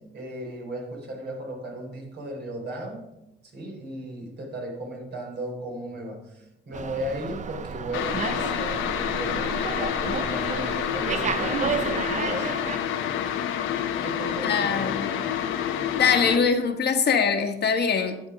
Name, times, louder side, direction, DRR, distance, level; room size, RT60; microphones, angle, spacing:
voice 1, 0.0-3.1 3.5-13.3 13.6-13.7 14.0-15.2, right 1 dB, 60° right, 0 dB, 4.0 m, -36 dB
Slam, 6.7-12.8, right 6 dB, 40° right, 0.6 m, -32 dB
sound 1, 7.9-16.4, left 9 dB, 85° left, 1.0 m, -28 dB
voice 2, 14.4-15.1 16.0-18.2, left 6 dB, 55° left, 5 dB, 1.4 m, -22 dB
10.5 x 7.7 x 5.0 m, 0.89 s
cardioid pair, 90°, 20 cm